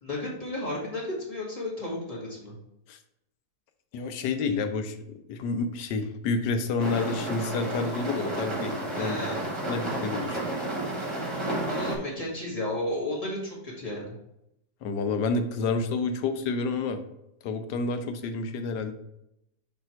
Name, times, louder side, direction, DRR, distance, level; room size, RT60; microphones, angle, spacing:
voice 1, 0.0-2.5 8.9-9.5 11.7-14.1, left 1 dB, 20° left, -5 dB, 2.0 m, -33 dB
voice 2, 3.9-5.0 5.3-9.3 9.7-10.4 14.8-17.0 17.4-18.9, left 4 dB, 85° left, 7 dB, 1.3 m, -29 dB
sound 1, 6.8-12.0, right 1 dB, 20° right, 1.4 m, -31 dB
6.8 x 3.4 x 4.5 m, 0.84 s
omnidirectional pair, 1.8 m